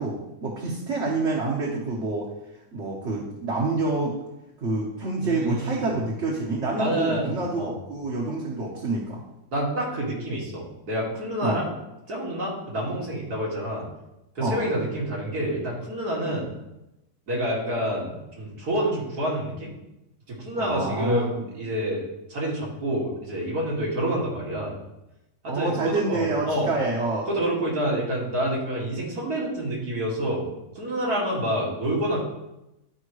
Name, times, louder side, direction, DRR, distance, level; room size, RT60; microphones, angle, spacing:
voice 1, 0.0-2.3 2.7-4.1 4.6-9.2 11.4-11.6 14.4-14.6 20.6-21.5 25.5-27.3, right 2 dB, 50° right, -4 dB, 1.4 m, -27 dB
voice 2, 5.2-5.8 6.8-7.7 9.5-11.7 12.1-13.9 14.3-16.5 17.3-19.7 20.3-22.0 22.3-24.7 25.4-26.7 27.3-30.4 30.7-32.2, right 1 dB, 80° right, -4 dB, 2.8 m, -28 dB
11.5 x 5.0 x 3.2 m, 0.92 s
omnidirectional pair, 1.6 m